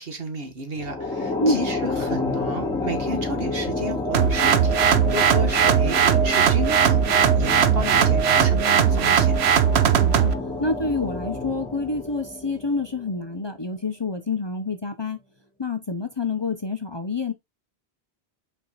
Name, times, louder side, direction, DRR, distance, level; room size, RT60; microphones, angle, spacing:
voice 1, 0.0-9.4, right 2 dB, 65° right, 1.6 m, -32 dB
sound 1, 0.8-13.3, left 1 dB, 5° left, 2.4 m, -28 dB
sound 2, 4.1-10.3, right 8 dB, 80° right, 1.0 m, -19 dB
voice 2, 10.0-10.3 10.6-15.2 15.6-17.3, left 3 dB, 30° left, 0.8 m, -27 dB
5.8 x 4.3 x 4.0 m
omnidirectional pair, 1.1 m